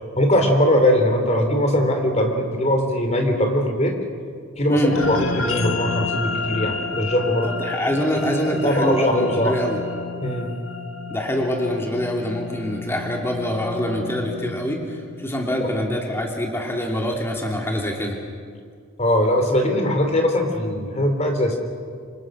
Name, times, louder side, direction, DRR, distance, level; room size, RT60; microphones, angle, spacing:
voice 1, 0.2-3.9 4.6-4.8 5.1-7.5 8.6-9.5 10.2-10.5 19.0-21.6, left 1 dB, 30° left, 4 dB, 3.5 m, -20 dB
sound 1, 4.9-15.5, left 4 dB, 75° left, 1.7 m, -31 dB
voice 2, 7.4-9.8 11.1-18.2, equal, 10° left, 0 dB, 2.9 m, -24 dB
27.0 x 25.0 x 6.3 m, 2.1 s
head